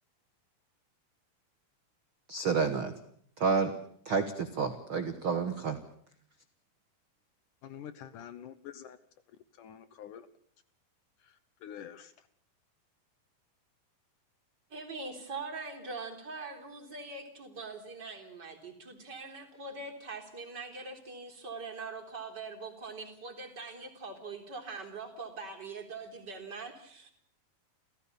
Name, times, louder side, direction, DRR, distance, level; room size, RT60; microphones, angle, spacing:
voice 1, 2.3-2.9 3.4-3.8 4.0-5.8, right 5 dB, 50° right, 1.6 m, -29 dB
voice 2, 7.6-9.0 9.6-10.3 11.2-12.1, left 9 dB, 65° left, 2.2 m, -47 dB
voice 3, 14.7-27.1, right 3 dB, 25° right, 4.1 m, -42 dB
29.5 x 16.0 x 6.9 m
omnidirectional pair, 4.6 m